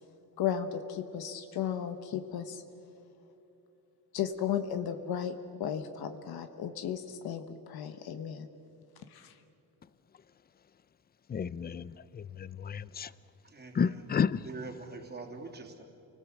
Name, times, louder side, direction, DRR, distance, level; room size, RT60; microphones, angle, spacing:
voice 1, 0.4-2.6 4.1-5.3 5.6-8.5 9.1-9.3, left 9 dB, 75° left, 8 dB, 1.2 m, -34 dB
voice 2, 11.3-13.1 13.7-14.4, left 6 dB, 25° left, 18 dB, 0.5 m, -31 dB
voice 3, 13.4-14.0 14.4-15.8, right 3 dB, 25° right, 2 dB, 2.9 m, -44 dB
29.0 x 19.5 x 7.3 m, 2.9 s
cardioid pair, 140°, 37 cm